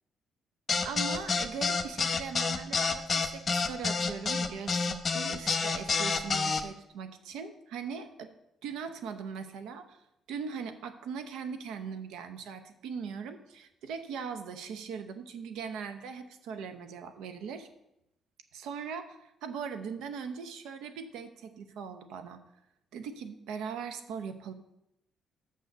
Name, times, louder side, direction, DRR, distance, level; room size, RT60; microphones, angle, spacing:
sound 1, 0.7-6.6, left 4 dB, 40° left, 0.8 m, -28 dB
voice 1, 0.8-8.3 8.6-10.0 10.3-17.7 18.5-22.4 22.9-24.5, right 6 dB, 90° right, 8 dB, 0.8 m, -40 dB
6.6 x 6.5 x 6.7 m, 0.85 s
cardioid pair, 90°, 0 cm